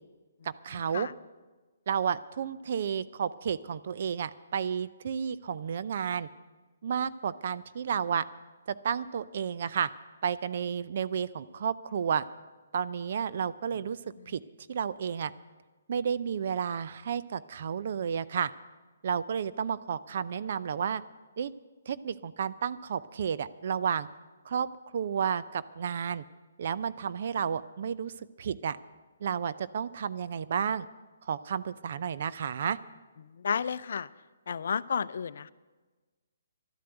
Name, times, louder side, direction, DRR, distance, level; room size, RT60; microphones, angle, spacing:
voice 1, 0.4-1.1 1.9-6.3 6.8-8.2 8.8-9.9 10.2-12.3 12.7-14.0 14.3-14.4 14.7-15.3 15.9-18.5 19.0-21.0 21.4-21.5 21.9-24.1 24.5-24.7 24.9-26.2 26.6-28.1 28.4-28.8 29.2-30.9 31.2-32.8, right 7 dB, 55° right, 15 dB, 0.5 m, -31 dB
voice 2, 33.4-34.1 34.5-35.5, left 6 dB, 65° left, 17 dB, 0.5 m, -31 dB
12.0 x 10.0 x 7.9 m, 1.3 s
hypercardioid pair, 140°, 0 cm